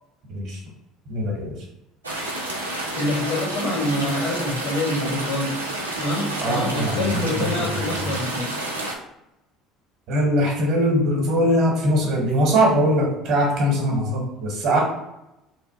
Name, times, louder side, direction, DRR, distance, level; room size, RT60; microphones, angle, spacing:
voice 1, 1.1-1.5 6.4-8.1 10.1-14.8, equal, 55° right, 0 dB, 0.9 m, -21 dB
sound 1, 2.0-9.0, right 1 dB, 85° right, 0.3 m, -30 dB
voice 2, 2.9-5.6 6.0-8.5, left 1 dB, 65° left, 1 dB, 0.6 m, -26 dB
3.2 x 2.5 x 2.3 m, 0.88 s
figure-of-eight pair, 60°, 0 cm